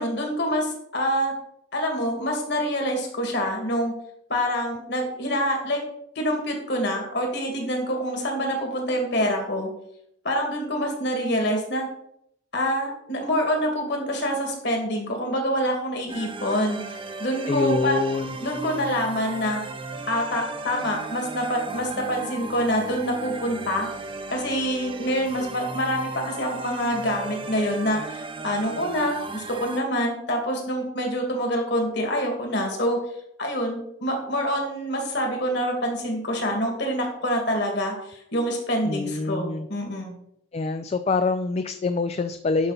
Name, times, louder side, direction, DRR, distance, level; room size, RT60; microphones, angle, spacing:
voice 1, 0.0-1.3 1.7-3.9 4.3-5.8 6.2-9.7 10.2-11.9 12.5-18.0 18.4-19.6 20.1-23.9 24.3-33.0 33.4-40.1, equal, 60° left, 2 dB, 2.3 m, -26 dB
sound 1, 16.1-29.8, right 3 dB, 25° right, 0.6 m, -36 dB
voice 2, 17.4-18.3 38.8-39.7 40.5-42.7, left 4 dB, 35° left, 9 dB, 0.3 m, -25 dB
11.0 x 5.4 x 4.1 m, 0.74 s
head